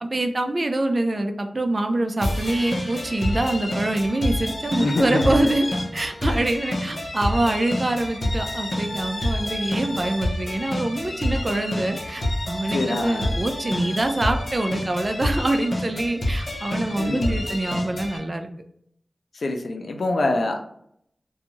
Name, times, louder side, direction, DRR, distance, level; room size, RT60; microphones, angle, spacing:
voice 1, 0.0-5.7 5.9-18.5, right 2 dB, 45° right, 6 dB, 0.4 m, -25 dB
sound 1, 2.2-18.2, left 1 dB, 60° left, 0.8 m, -28 dB
voice 2, 4.8-5.5 6.3-6.5 12.7-13.3 17.0-17.4 19.3-20.6, left 2 dB, 80° left, 4 dB, 0.4 m, -25 dB
2.6 x 2.3 x 2.9 m, 0.70 s
wide cardioid pair, 60°, 0 cm